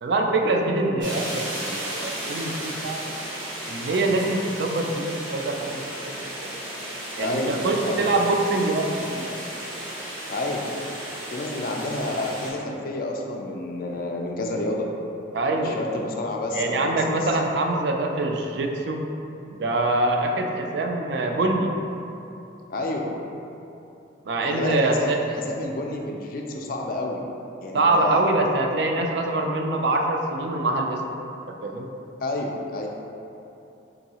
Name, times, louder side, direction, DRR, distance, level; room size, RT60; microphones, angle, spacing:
voice 1, 0.0-3.1 3.7-6.6 7.2-8.9 9.1-9.4 15.3-15.8 16.5-19.0 19.5-21.7 24.3-25.2 27.7-31.0 31.6-31.9, right 2 dB, 65° right, 2 dB, 0.3 m, -24 dB
sound 1, 1.0-12.5, right 1 dB, 85° right, 1.1 m, -34 dB
voice 2, 7.2-8.1 10.3-10.7 11.3-14.9 15.5-17.2 22.7-23.1 24.4-27.3 27.6-28.2 32.2-32.9, left 2 dB, 50° left, 1 dB, 0.3 m, -29 dB
3.9 x 2.6 x 2.8 m, 2.8 s
head